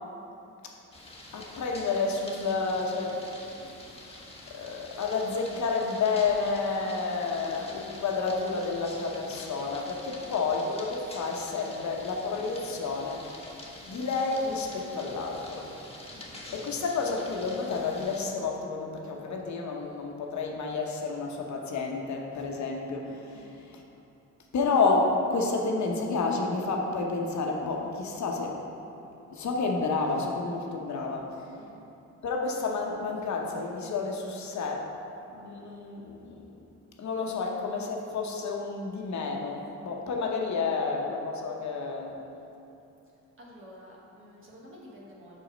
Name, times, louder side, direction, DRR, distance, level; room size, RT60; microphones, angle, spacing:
sound 1, 0.9-18.2, left 2 dB, 20° left, 1.2 m, -46 dB
voice 1, 1.3-3.2 3.5-13.3 13.8-15.7 16.5-23.8 24.5-28.6 29.3-31.5 32.2-34.9 35.3-36.6 37.0-42.2, left 4 dB, 60° left, 1 dB, 1.0 m, -30 dB
voice 2, 16.1-16.4 23.3-23.6 31.6-31.8 43.4-45.4, equal, 40° right, -5 dB, 1.3 m, -51 dB
5.5 x 4.9 x 5.1 m, 2.8 s
supercardioid pair, 60°, 33 cm